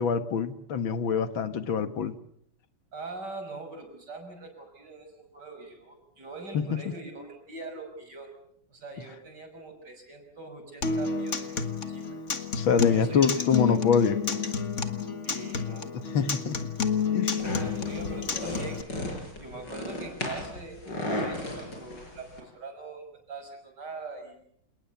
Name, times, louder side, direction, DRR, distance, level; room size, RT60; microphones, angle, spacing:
voice 1, 0.0-2.2 6.5-6.6 12.6-14.2 16.1-16.6 17.1-17.4, left 6 dB, 75° left, 11 dB, 2.2 m, -25 dB
voice 2, 2.9-8.3 8.7-11.6 11.9-12.0 12.8-13.8 15.2-15.9 17.3-20.8 21.1-24.4, right 3 dB, 55° right, 5 dB, 6.5 m, -43 dB
Acoustic guitar, 10.8-18.8, left 6 dB, 40° left, 1.9 m, -30 dB
sound 1, 17.4-22.4, left 1 dB, 55° left, 6.7 m, -35 dB
28.0 x 20.0 x 7.0 m, 0.69 s
omnidirectional pair, 2.2 m